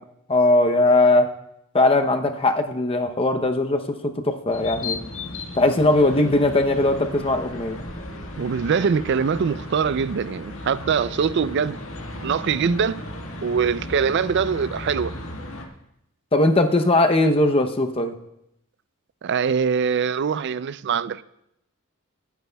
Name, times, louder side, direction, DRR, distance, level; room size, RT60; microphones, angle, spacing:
voice 1, 0.3-1.3 1.7-5.0 5.5-7.9 16.3-18.2, left 2 dB, 25° left, 0.7 m, -19 dB
sound 1, 4.5-15.6, left 1 dB, 85° left, 1.6 m, -35 dB
voice 2, 8.4-11.8 12.2-13.0 13.4-15.1 19.2-21.2, right 6 dB, 55° right, 0.4 m, -23 dB
22.5 x 9.4 x 2.3 m
head